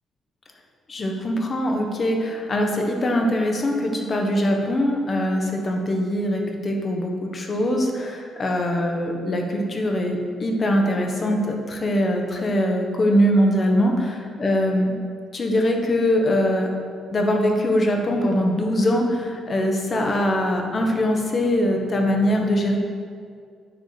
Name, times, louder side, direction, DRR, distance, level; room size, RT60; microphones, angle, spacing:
voice 1, 0.9-14.9 15.3-16.7 17.1-22.8, equal, 40° left, 2 dB, 1.2 m, -22 dB
9.2 x 6.5 x 3.3 m, 2.2 s
cardioid pair, 90°, 0 cm